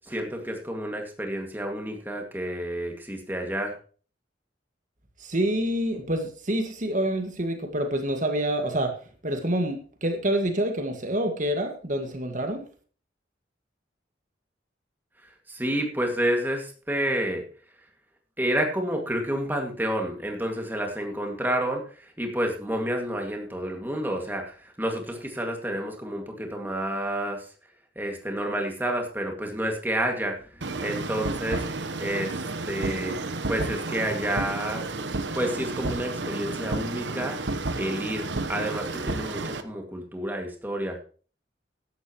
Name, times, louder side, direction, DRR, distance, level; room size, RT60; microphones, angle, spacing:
voice 1, 0.0-3.8 15.2-17.4 17.8-17.9 18.4-27.5 28.0-31.7 32.0-34.8 35.3-37.4 37.7-41.0, right 1 dB, 10° right, 2 dB, 2.1 m, -30 dB
voice 2, 5.2-8.9 9.2-12.6, right 1 dB, 45° right, 5 dB, 1.9 m, -27 dB
sound 1, 30.6-39.6, right 3 dB, 75° right, 1.0 m, -31 dB
16.0 x 11.5 x 3.1 m, 0.40 s
head